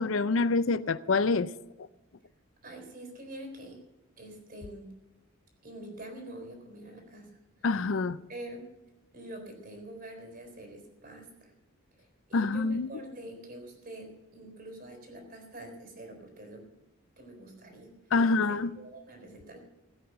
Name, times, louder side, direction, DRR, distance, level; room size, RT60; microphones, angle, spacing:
voice 1, 0.0-1.5 7.6-8.2 12.3-12.9 18.1-18.8, left 3 dB, 65° left, 0.5 m, -26 dB
voice 2, 2.6-3.8 4.2-4.9 5.6-7.3 7.6-7.7 8.3-8.6 9.1-11.5 12.0-14.1 14.3-16.6 17.2-17.9 18.2-19.6, right 1 dB, 45° right, 4.0 m, -45 dB
17.0 x 8.7 x 6.9 m
head